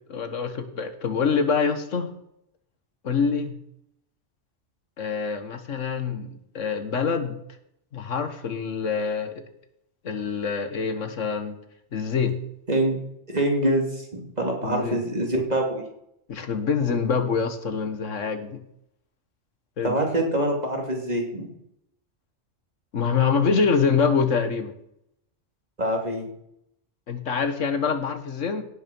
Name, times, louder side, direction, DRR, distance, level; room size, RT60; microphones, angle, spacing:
voice 1, 0.1-2.1 3.0-3.6 5.0-7.4 7.9-9.4 10.0-11.6 11.9-12.4 14.6-15.0 16.3-18.6 19.8-20.0 22.9-24.7 27.1-28.6, left 5 dB, 85° left, 9 dB, 1.7 m, -25 dB
voice 2, 12.7-13.0 13.3-15.8 19.8-21.5 25.8-26.3, right 1 dB, 35° right, 1 dB, 2.9 m, -25 dB
17.0 x 6.8 x 6.1 m, 0.76 s
omnidirectional pair, 1.3 m